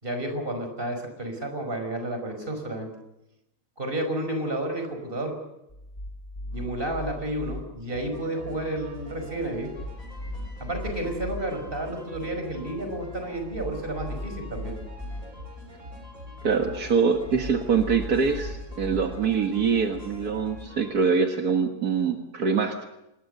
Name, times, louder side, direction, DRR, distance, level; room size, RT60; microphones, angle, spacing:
voice 1, 0.0-2.9 3.8-5.3 6.5-9.7 10.6-14.7, right 1 dB, 35° right, 5 dB, 5.5 m, -31 dB
sound 1, 5.7-7.6 9.5-11.4 13.3-15.2 17.1-19.0, left 1 dB, 25° left, 6.5 m, -38 dB
sound 2, 7.9-20.9, left 2 dB, 60° right, 6.7 m, -43 dB
voice 2, 16.4-22.8, right 5 dB, 75° right, 4 dB, 2.1 m, -24 dB
26.5 x 21.0 x 6.8 m, 0.88 s
omnidirectional pair, 1.6 m